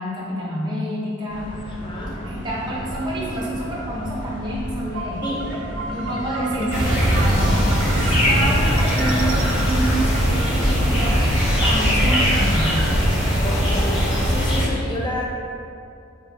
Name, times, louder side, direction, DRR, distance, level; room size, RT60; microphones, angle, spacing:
voice 1, 0.0-1.5 2.2-5.2 5.8-11.2 11.6-12.8, right 1 dB, 20° right, -5 dB, 0.6 m, -28 dB
sound 1, 1.3-7.6, equal, 40° left, 0.9 m, -34 dB
voice 2, 1.7-2.2 5.2-5.4 13.4-14.0 14.2-15.3, left 1 dB, 25° left, -3 dB, 0.4 m, -30 dB
sound 2, 4.9-11.0, right 3 dB, 65° right, 0.3 m, -34 dB
sound 3, 6.7-14.6, equal, 65° left, 1.1 m, -19 dB
2.6 x 2.5 x 3.9 m, 2.5 s
head